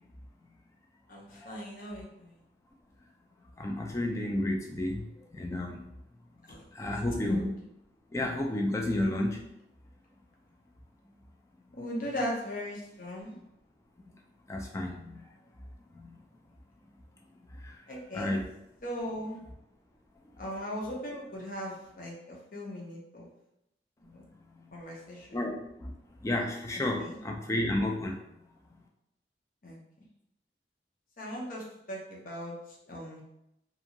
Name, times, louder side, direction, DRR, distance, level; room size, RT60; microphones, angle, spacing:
voice 1, 1.1-2.4 6.5-6.7 6.9-7.5 11.7-13.3 17.9-18.4 18.8-19.4 20.4-23.3 24.1-24.3 24.7-25.4 27.0-27.2 29.6-29.8 31.2-33.2, equal, 50° left, -2 dB, 0.6 m, -38 dB
voice 2, 3.6-5.0 5.3-5.8 6.8-7.4 8.1-9.4 14.5-15.2 16.0-16.1 17.6-17.7 18.1-18.4 25.3-25.9 26.2-28.1, left 1 dB, 15° left, 1 dB, 0.3 m, -31 dB
2.6 x 2.4 x 2.8 m, 0.83 s
head